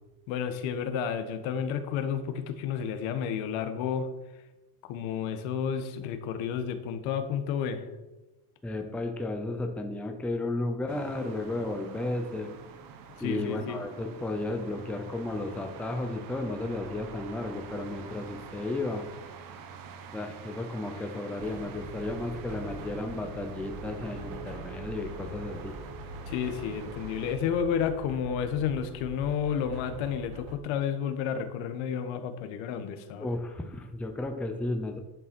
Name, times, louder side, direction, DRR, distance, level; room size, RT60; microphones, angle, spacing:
voice 1, 0.3-4.1 4.8-7.9 13.2-13.8 26.3-33.3, left 7 dB, 70° left, 9 dB, 1.6 m, -31 dB
voice 2, 8.6-12.5 13.2-19.1 20.1-25.7 33.2-35.0, left 2 dB, 5° left, 4 dB, 0.6 m, -33 dB
sound 1, 10.9-27.4, right 7 dB, 45° right, 1.2 m, -46 dB
sound 2, 21.4-30.5, right 1 dB, 60° right, 2.5 m, -43 dB
11.0 x 6.9 x 6.2 m, 1.0 s
cardioid pair, 175°, 48 cm